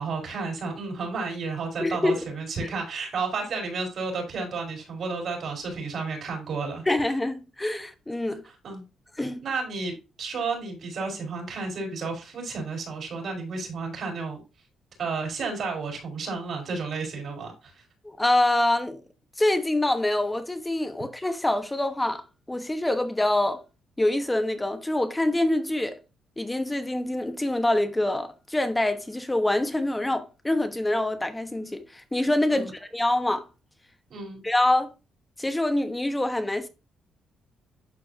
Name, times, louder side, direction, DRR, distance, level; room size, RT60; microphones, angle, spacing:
voice 1, 0.0-6.9 8.6-8.8 9.2-14.4 15.0-17.7 32.5-32.7 34.1-34.4, right 4 dB, 60° right, 4.4 m, -32 dB
voice 2, 1.8-2.2 6.9-8.4 9.2-9.4 18.0-19.0 19.4-22.2 22.5-23.6 24.0-26.0 26.4-33.4 34.4-34.9 35.4-36.7, left 1 dB, 10° left, 1.2 m, -25 dB
11.5 x 4.5 x 2.7 m
cardioid pair, 90°, 0 cm